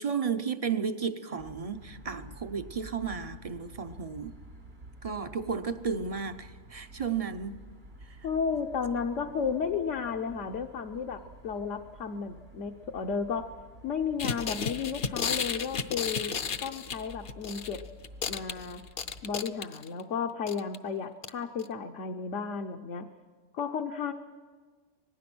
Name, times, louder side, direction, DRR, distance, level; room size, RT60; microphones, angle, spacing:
voice 1, 0.0-4.4 5.0-7.6 8.0-8.3 8.9-9.0, right 6 dB, 35° right, 0.6 m, -33 dB
sound 1, 1.4-19.3, right 1 dB, 80° right, 3.6 m, -50 dB
voice 2, 8.2-13.5 13.8-16.3 16.6-17.8 18.3-18.8 19.2-23.1 23.5-24.1, left 6 dB, 70° left, 1.2 m, -33 dB
sound 2, 14.2-17.8 18.0-20.0 20.5-20.8 21.2-21.3 21.6-21.7, left 6 dB, 55° left, 0.9 m, -33 dB
25.5 x 19.0 x 6.1 m
omnidirectional pair, 1.3 m